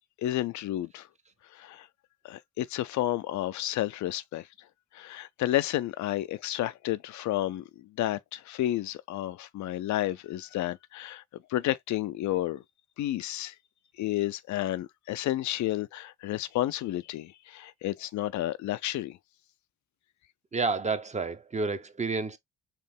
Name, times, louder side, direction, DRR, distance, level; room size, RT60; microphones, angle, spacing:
voice 1, 0.2-1.1 1.5-1.9 2.2-4.5 4.9-11.2 11.5-12.6 13.0-13.5 14.0-19.2, left 14 dB, 70° left, 0.5 m, -31 dB
voice 2, 20.5-22.4, right 4 dB, 25° right, 0.7 m, -30 dB
4.4 x 2.5 x 3.5 m
cardioid pair, 90°, 30 cm